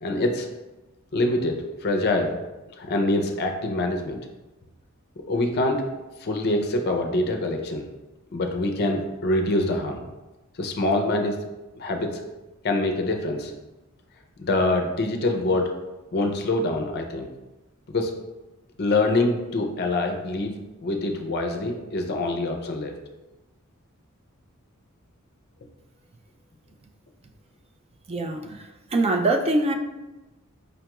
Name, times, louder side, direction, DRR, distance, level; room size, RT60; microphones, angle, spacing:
voice 1, 0.0-0.5 1.1-2.4 2.8-4.2 5.3-5.9 6.2-7.9 8.3-10.0 10.6-11.4 11.8-12.2 12.6-13.5 14.4-15.7 16.1-17.3 17.9-18.1 18.8-20.5 20.8-22.9, left 2 dB, 50° left, 4 dB, 0.5 m, -25 dB
voice 2, 28.1-28.7 28.9-29.7, right 2 dB, 30° right, 4 dB, 0.3 m, -23 dB
5.1 x 2.3 x 2.9 m, 1.1 s
head